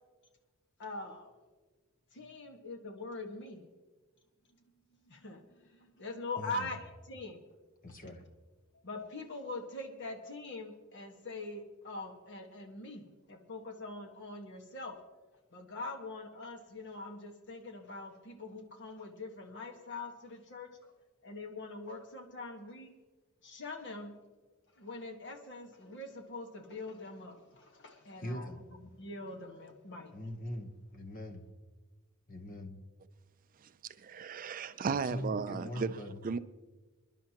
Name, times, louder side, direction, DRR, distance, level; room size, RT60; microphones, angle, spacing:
voice 1, 0.8-1.3 2.1-3.7 4.9-7.4 8.8-15.0 15.5-20.7 21.2-22.9 23.4-24.2 24.7-30.1, left 2 dB, 55° left, 1.6 m, -43 dB
voice 2, 6.4-6.7 7.8-8.2 28.2-28.6 30.1-31.4 32.3-32.8 34.9-36.2, left 1 dB, 40° left, 1.1 m, -41 dB
voice 3, 34.0-36.0 36.2-36.4, right 5 dB, 40° right, 0.4 m, -35 dB
27.0 x 11.0 x 3.0 m
head